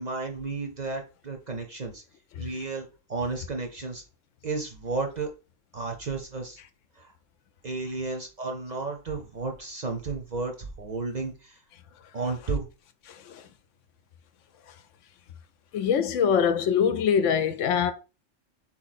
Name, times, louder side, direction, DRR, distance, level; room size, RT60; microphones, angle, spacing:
voice 1, 0.0-2.0 2.4-4.0 4.4-5.3 5.7-6.6 7.0-7.1 7.6-11.6 12.1-12.7, right 3 dB, 45° right, 0.7 m, -33 dB
voice 2, 13.1-13.4 15.7-17.9, left 7 dB, 75° left, 0.9 m, -23 dB
4.0 x 3.1 x 4.1 m
omnidirectional pair, 1.3 m